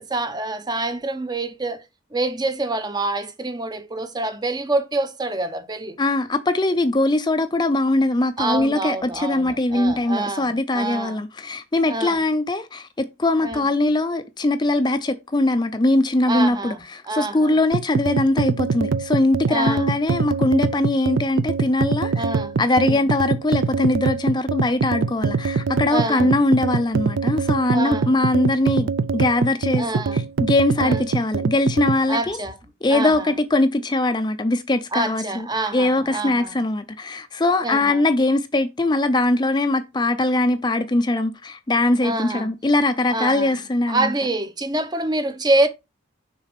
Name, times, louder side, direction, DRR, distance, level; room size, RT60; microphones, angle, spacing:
voice 1, 0.0-1.9 2.1-6.0 8.4-11.2 11.9-12.2 13.4-13.6 16.3-16.8 17.1-17.6 19.5-19.9 22.2-22.6 22.8-23.0 25.9-26.3 27.7-28.1 29.8-30.2 30.8-31.0 32.1-32.6 32.9-33.3 34.9-36.6 37.6-38.0 42.0-42.5 43.1-43.6 43.9-45.7, right 2 dB, 20° right, 0.7 m, -26 dB
voice 2, 6.0-22.2 22.6-32.4 32.8-35.5 35.7-44.1, left 2 dB, 20° left, 0.5 m, -21 dB
sound 1, 17.7-32.0, right 4 dB, 65° right, 0.4 m, -23 dB
6.5 x 4.0 x 5.0 m
head